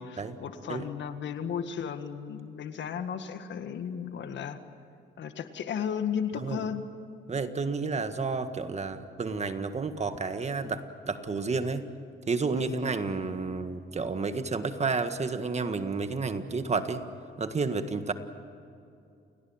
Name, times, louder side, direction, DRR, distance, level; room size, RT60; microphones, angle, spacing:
voice 1, 0.0-4.6 5.2-6.9 12.5-12.9, left 7 dB, 65° left, 9 dB, 1.9 m, -34 dB
voice 2, 7.3-11.9 12.3-17.0 17.4-18.1, right 4 dB, 35° right, 9 dB, 1.7 m, -31 dB
29.5 x 18.0 x 8.9 m, 2.5 s
cardioid pair, 90°, 20 cm